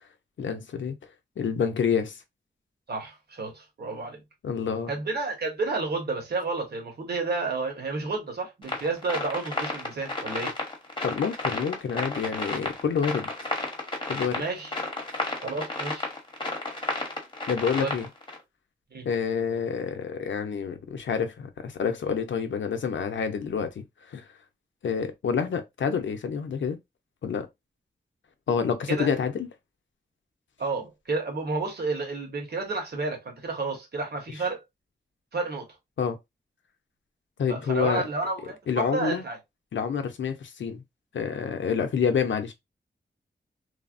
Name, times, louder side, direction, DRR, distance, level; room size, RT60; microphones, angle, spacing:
voice 1, 0.4-1.0 1.4-2.2 4.4-4.9 11.0-13.3 14.1-14.4 17.5-18.1 19.0-24.2 24.8-26.8 27.2-27.5 28.5-29.5 36.0-36.2 37.4-38.1 38.7-39.2 39.7-40.8 41.1-42.5, left 6 dB, 90° left, 0.6 m, -28 dB
voice 2, 2.9-4.2 4.9-10.5 14.3-14.7 15.4-16.1 17.8-17.9 18.9-19.1 28.9-29.1 30.6-34.6 35.3-35.7 37.5-39.4, right 3 dB, 60° right, 1.2 m, -31 dB
sound 1, 8.6-18.4, left 2 dB, 25° left, 0.9 m, -32 dB
3.2 x 2.0 x 2.4 m
wide cardioid pair, 110°, 19 cm